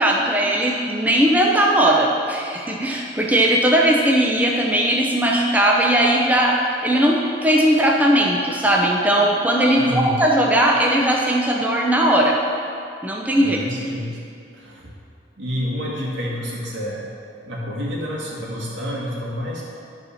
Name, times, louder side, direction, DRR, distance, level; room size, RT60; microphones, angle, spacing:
voice 1, 0.0-12.4 13.0-13.6, right 1 dB, 10° right, -2 dB, 0.7 m, -18 dB
voice 2, 9.8-10.2 13.4-14.2 14.5-14.9 15.4-17.0 17.4-19.6, equal, 85° right, -4 dB, 2.1 m, -28 dB
11.5 x 4.2 x 6.3 m, 2.5 s
head